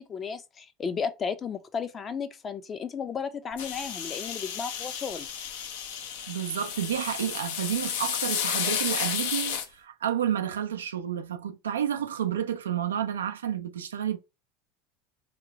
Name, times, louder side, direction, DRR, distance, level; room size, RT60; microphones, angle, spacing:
voice 1, 0.0-5.3, left 6 dB, 35° left, 0.6 m, -34 dB
sound 1, 3.6-9.7, left 8 dB, 75° left, 0.6 m, -32 dB
voice 2, 6.3-14.2, right 9 dB, 85° right, 0.4 m, -30 dB
2.9 x 2.2 x 4.0 m
hypercardioid pair, 85°, 0 cm